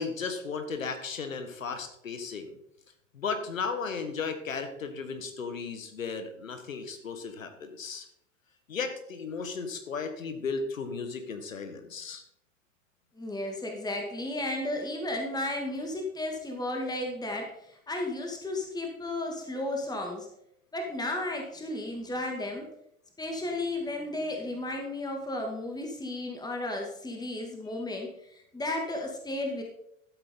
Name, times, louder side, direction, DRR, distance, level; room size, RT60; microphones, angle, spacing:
voice 1, 0.0-2.5 3.1-8.1 8.7-12.2, left 5 dB, 85° left, 8 dB, 1.5 m, -35 dB
voice 2, 13.2-17.5 17.9-20.3 20.7-22.6 23.2-29.6, left 1 dB, 10° left, 2 dB, 2.1 m, -33 dB
13.0 x 8.2 x 3.8 m, 0.77 s
figure-of-eight pair, 80°, 39 cm